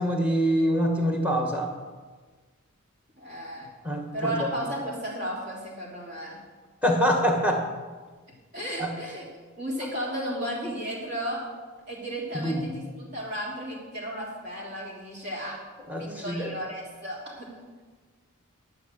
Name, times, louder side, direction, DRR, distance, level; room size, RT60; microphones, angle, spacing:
voice 1, 0.0-1.7 3.8-4.5 6.8-7.6 8.8-8.9 12.3-12.7 15.9-16.5, equal, 5° right, 2 dB, 1.4 m, -25 dB
voice 2, 3.2-3.7 4.1-6.4 8.5-9.3 9.6-11.5 11.9-15.6 15.9-17.5, equal, 45° right, -3 dB, 3.1 m, -34 dB
11.5 x 5.9 x 7.5 m, 1.4 s
head